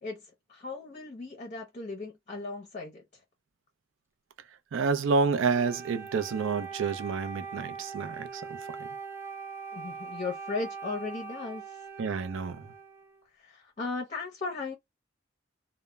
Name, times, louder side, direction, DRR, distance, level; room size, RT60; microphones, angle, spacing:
voice 1, 0.0-3.2 9.7-11.9 13.3-14.7, left 3 dB, 35° left, 0.6 m, -37 dB
voice 2, 4.7-8.5 8.8-8.9 12.0-12.7, right 5 dB, 80° right, 0.4 m, -29 dB
Wind instrument woodwind instrument, 5.5-13.2, right 5 dB, 10° right, 0.3 m, -42 dB
2.1 x 2.0 x 3.3 m
head